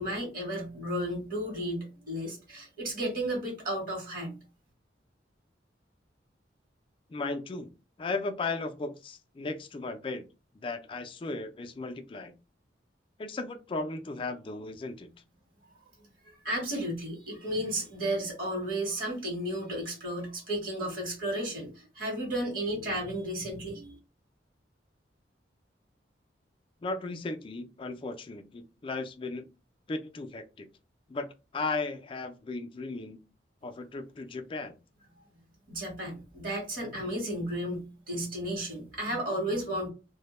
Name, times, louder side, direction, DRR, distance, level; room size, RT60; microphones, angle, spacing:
voice 1, 0.0-4.4 16.4-23.9 35.7-39.9, right 1 dB, 50° right, 0 dB, 1.0 m, -33 dB
voice 2, 7.1-7.7 8.0-10.2 10.6-12.3 13.2-15.1 26.8-29.5 29.9-30.7 31.1-31.3 31.5-33.2 33.6-34.8, left 3 dB, 30° left, 7 dB, 0.3 m, -36 dB
2.1 x 2.1 x 2.9 m, 0.30 s
head